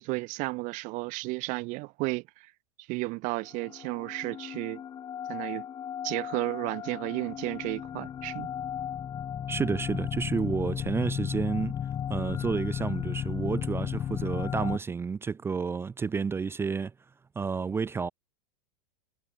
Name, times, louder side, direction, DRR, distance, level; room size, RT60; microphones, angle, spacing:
voice 1, 0.0-2.5 2.9-4.8 5.3-5.6 6.0-8.5, right 25 dB, 45° right, 2.0 m, -33 dB
sound 1, 3.5-14.8, left 9 dB, 25° left, 0.8 m, -34 dB
voice 2, 9.5-11.7 12.1-16.9 17.4-18.1, right 5 dB, 15° right, 0.5 m, -30 dB
hypercardioid pair, 100°, 17 cm